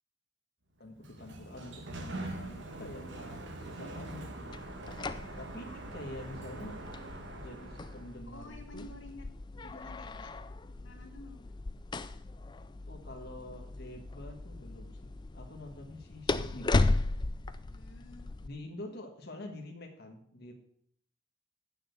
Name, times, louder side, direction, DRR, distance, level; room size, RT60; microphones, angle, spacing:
voice 1, 0.8-4.6 5.4-6.8 7.3-8.9 12.9-16.9 18.4-20.5, left 1 dB, 50° left, 2 dB, 1.5 m, -46 dB
Sliding door, 0.8-8.2, right 2 dB, 60° right, 1.3 m, -43 dB
sound 1, 4.5-18.5, left 2 dB, 20° left, 0.4 m, -36 dB
voice 2, 8.3-9.3 9.6-10.3 10.7-11.5 17.7-18.3, left 2 dB, 70° left, 3 dB, 1.8 m, -51 dB
8.8 x 6.8 x 8.0 m, 0.67 s
head